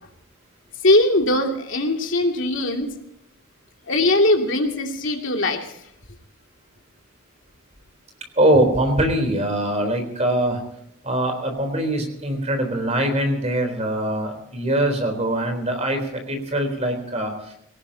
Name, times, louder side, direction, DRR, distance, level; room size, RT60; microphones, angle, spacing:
voice 1, 0.8-2.9 3.9-5.7, left 1 dB, 65° left, 2 dB, 2.6 m, -20 dB
voice 2, 8.4-10.6 11.0-17.5, right 1 dB, 30° right, 5 dB, 3.7 m, -22 dB
22.0 x 18.5 x 2.8 m, 0.73 s
head